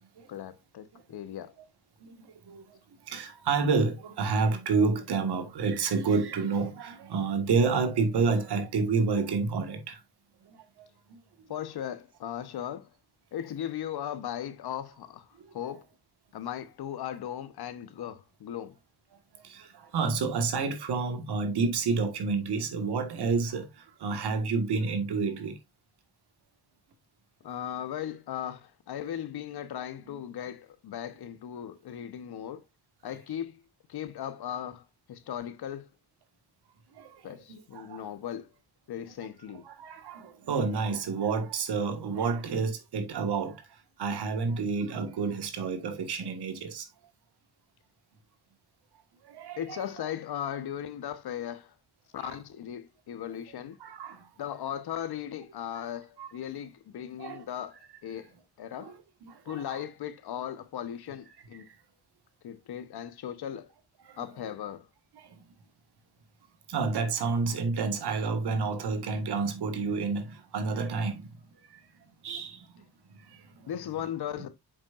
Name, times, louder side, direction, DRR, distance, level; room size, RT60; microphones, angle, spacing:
voice 1, 0.3-1.5 11.5-12.9 13.3-15.9 16.3-18.8 27.4-32.6 33.0-33.6 33.9-35.9 37.2-38.5 38.9-39.7 49.6-51.7 52.1-53.8 54.4-58.3 58.6-58.9 59.4-61.7 62.4-63.7 64.2-64.9 73.7-74.5, left 10 dB, 75° left, 1.1 m, -37 dB
voice 2, 2.0-2.6 3.0-10.0 10.5-10.9 15.4-15.5 19.4-25.6 37.0-38.1 39.6-43.7 44.0-46.9 49.2-49.8 52.2-52.4 53.8-54.3 56.2-56.3 57.2-57.4 58.8-59.8 64.1-64.2 65.2-65.3 66.7-71.3 71.7-71.8 72.2-72.8 73.2-73.7, right 4 dB, 80° right, 1.6 m, -29 dB
7.4 x 5.8 x 2.5 m
cardioid pair, 100°, 39 cm